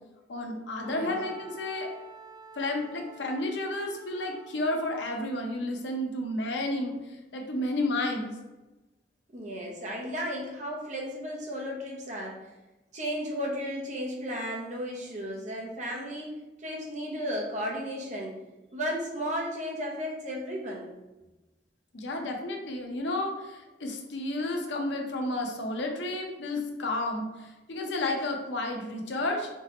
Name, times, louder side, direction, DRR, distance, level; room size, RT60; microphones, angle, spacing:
voice 1, 0.3-1.9 2.6-7.0 7.3-8.3 21.9-29.5, left 2 dB, 85° left, 2 dB, 0.7 m, -31 dB
Wind instrument woodwind instrument, 0.8-5.5, right 4 dB, 25° right, 0.4 m, -49 dB
voice 2, 0.8-1.1 9.3-12.4 12.9-16.3 16.6-18.4 18.7-20.9, equal, 40° right, -2 dB, 0.9 m, -34 dB
4.6 x 3.0 x 2.9 m, 1.0 s
head